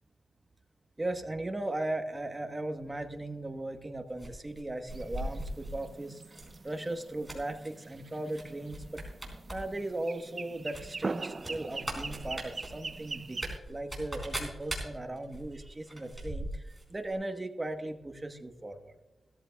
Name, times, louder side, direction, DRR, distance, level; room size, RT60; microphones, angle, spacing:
voice 1, 1.0-6.2 6.6-9.0 9.5-13.4 13.7-18.9, right 2 dB, 20° right, 6 dB, 1.1 m, -37 dB
sound 1, 4.2-5.8 6.3-6.6 6.9-7.7 8.3-8.4 8.7-9.6 9.9-10.0 10.7-16.8 17.1-17.2, right 1 dB, 5° right, 4.1 m, -40 dB
sound 2, 4.9-13.6, right 3 dB, 45° right, 0.5 m, -42 dB
17.0 x 13.5 x 2.3 m, 1.1 s
wide cardioid pair, 95°, 0 cm